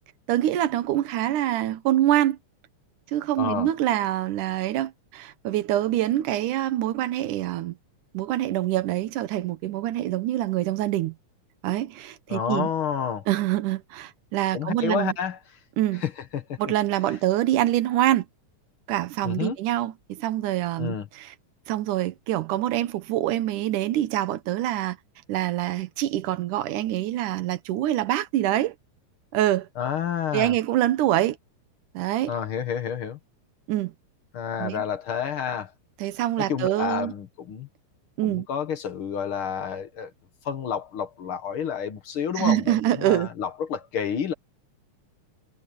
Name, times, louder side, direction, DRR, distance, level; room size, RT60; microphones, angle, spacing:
voice 1, 0.3-2.4 3.1-7.8 8.1-11.1 11.6-12.7 13.3-15.1 15.8-16.0 16.6-18.3 18.9-21.3 21.7-25.0 25.3-28.8 29.3-29.7 30.3-31.4 31.9-32.3 33.7-33.9 34.6-34.8 36.0-37.1 38.2-38.5 42.4-43.3, right 13 dB, 85° right, 2.6 m, -25 dB
voice 2, 3.4-3.7 12.3-13.3 14.5-15.4 16.0-16.6 19.2-19.6 20.8-21.1 29.8-30.5 32.3-33.2 34.3-35.7 36.4-37.7 38.2-40.1 40.4-44.3, left 8 dB, 50° left, 1.9 m, -29 dB
omnidirectional pair, 3.5 m